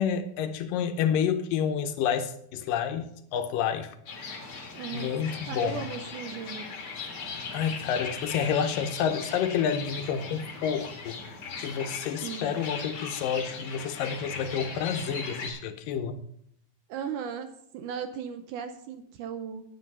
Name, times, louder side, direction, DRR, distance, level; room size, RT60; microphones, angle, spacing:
voice 1, 0.0-4.0 4.9-5.8 7.5-11.2 11.6-16.2, left 8 dB, 75° left, 2.4 m, -29 dB
sound 1, 4.1-15.5, left 4 dB, 45° left, 2.4 m, -39 dB
voice 2, 4.7-5.2 5.5-6.7 12.2-12.6 16.9-19.6, right 7 dB, 75° right, 2.0 m, -37 dB
10.0 x 9.7 x 5.4 m
omnidirectional pair, 4.1 m